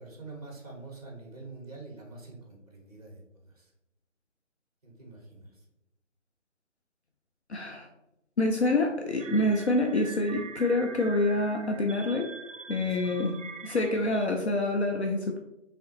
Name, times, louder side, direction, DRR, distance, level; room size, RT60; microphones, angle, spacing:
voice 1, 0.0-3.2 3.6-3.7 4.8-5.5 12.7-13.2 13.9-14.0, right 3 dB, 30° right, -1 dB, 0.9 m, -46 dB
voice 2, 7.5-7.9 8.4-12.3 12.7-15.4, left 2 dB, 60° left, 2 dB, 0.5 m, -27 dB
sound 1, 9.2-14.3, right 5 dB, 75° right, 0.5 m, -44 dB
3.7 x 3.0 x 3.1 m, 0.92 s
figure-of-eight pair, 155°, 38 cm